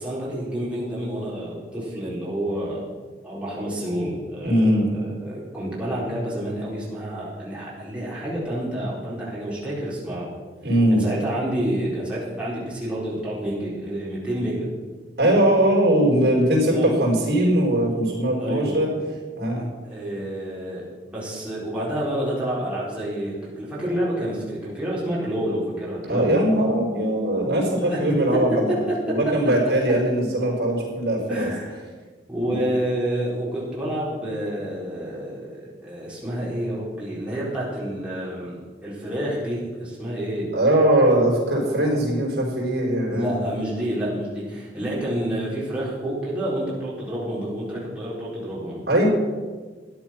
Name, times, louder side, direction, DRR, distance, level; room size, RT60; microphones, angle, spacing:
voice 1, 0.0-2.9 3.2-10.3 10.9-14.7 16.7-16.9 18.3-18.8 19.8-26.4 27.8-28.4 28.9-29.0 31.3-31.8 32.3-40.6 43.1-48.8, right 1 dB, 5° right, -8 dB, 4.6 m, -29 dB
voice 2, 4.4-4.8 10.6-11.0 15.2-18.9 19.4-19.7 26.1-31.5 32.5-32.7 40.5-43.4 48.9-49.1, right 1 dB, 65° right, -2 dB, 4.7 m, -20 dB
13.5 x 10.5 x 5.9 m, 1.4 s
head